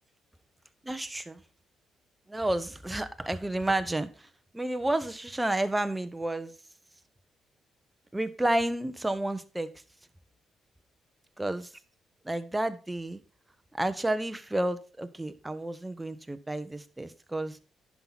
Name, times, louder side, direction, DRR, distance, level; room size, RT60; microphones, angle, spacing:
voice 1, 0.8-1.4 2.3-6.5 8.1-9.7 11.4-11.7 12.2-13.2 13.7-17.6, right 1 dB, 10° right, 10 dB, 0.9 m, -31 dB
10.0 x 5.9 x 4.0 m, 0.35 s
cardioid pair, 90°, 0 cm